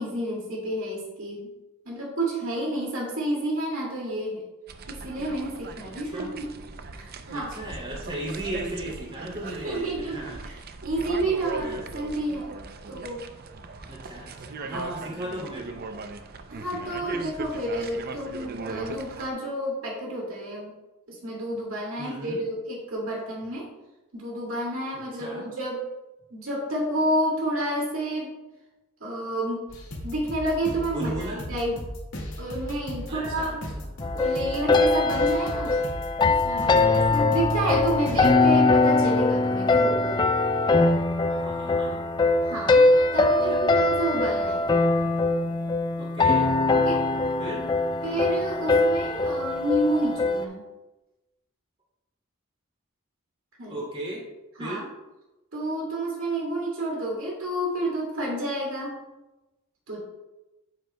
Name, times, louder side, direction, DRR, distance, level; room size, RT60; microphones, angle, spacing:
voice 1, 0.0-1.5 1.9-4.4 4.9-6.5 6.9-7.5 9.5-10.6 10.8-12.6 12.9-13.3 14.6-14.8 16.5-20.7 21.1-23.7 24.1-25.8 26.3-28.4 29.0-29.7 30.0-31.8 32.4-33.6 34.1-35.8 36.3-40.2 42.4-44.7 46.7-47.1 48.0-50.6 53.6-53.9 54.6-54.9 55.5-59.0 59.9-60.0, right 1 dB, 70° right, -3 dB, 2.1 m, -30 dB
sound 1, 4.7-19.3, right 3 dB, 45° right, 0.5 m, -39 dB
voice 2, 7.3-10.4 11.6-11.9 13.8-15.8 22.0-22.4 24.9-25.5 30.9-31.4 33.1-33.9 41.3-42.0 43.3-43.9 46.0-46.5 47.4-47.7 53.7-54.2 54.6-54.8, right 1 dB, 25° right, -4 dB, 2.4 m, -36 dB
sound 2, 29.7-38.3, left 1 dB, 75° left, 2.0 m, -36 dB
sound 3, 34.0-50.4, left 3 dB, 20° left, 0.3 m, -22 dB
9.1 x 7.9 x 2.2 m, 1.0 s
head